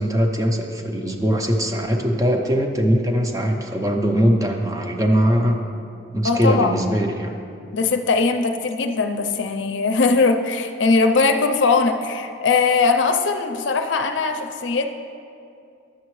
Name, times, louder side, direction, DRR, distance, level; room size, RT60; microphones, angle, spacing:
voice 1, 0.0-5.6 6.1-7.3, equal, 20° right, 2 dB, 0.5 m, -21 dB
voice 2, 6.2-6.9 7.7-14.9, left 4 dB, 80° left, 6 dB, 0.5 m, -20 dB
11.0 x 6.7 x 3.1 m, 2.5 s
head